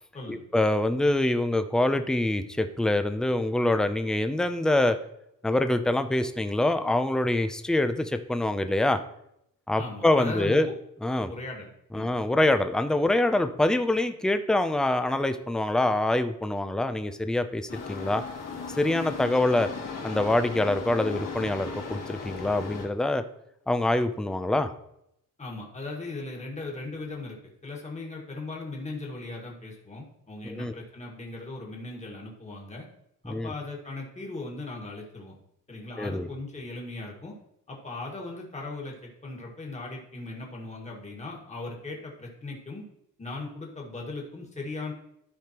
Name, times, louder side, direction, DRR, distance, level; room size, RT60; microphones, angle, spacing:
voice 1, 0.3-5.0 5.4-9.0 9.7-10.7 11.0-11.3 11.9-18.2 18.8-19.7 20.0-23.2 23.7-24.7 30.6-30.7 33.3-33.5 36.0-36.3, left 1 dB, ahead, 9 dB, 0.4 m, -25 dB
voice 2, 9.8-10.8 11.3-12.1 25.4-32.9 33.2-35.3 35.7-37.3 37.7-42.8 43.2-44.9, left 2 dB, 20° left, -1 dB, 1.8 m, -38 dB
sound 1, 17.7-22.9, left 5 dB, 70° left, 2.8 m, -37 dB
13.0 x 5.0 x 2.9 m, 0.77 s
cardioid pair, 140°, 33 cm